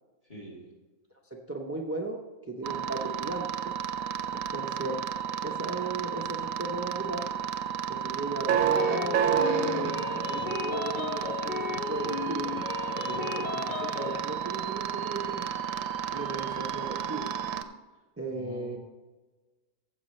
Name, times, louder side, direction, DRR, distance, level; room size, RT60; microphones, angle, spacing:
voice 1, 0.2-0.7 18.3-18.8, right 2 dB, 25° left, -3 dB, 2.5 m, -45 dB
voice 2, 1.5-3.8 4.3-5.0 5.4-7.3 7.9-12.5 12.9-15.5 16.1-17.3 18.2-18.8, right 2 dB, 25° right, 1 dB, 0.3 m, -36 dB
sound 1, 2.6-17.6, right 8 dB, 65° right, 0.9 m, -31 dB
sound 2, 8.8-14.2, left 7 dB, 75° left, 0.4 m, -35 dB
15.0 x 7.2 x 3.2 m, 1.3 s
omnidirectional pair, 1.6 m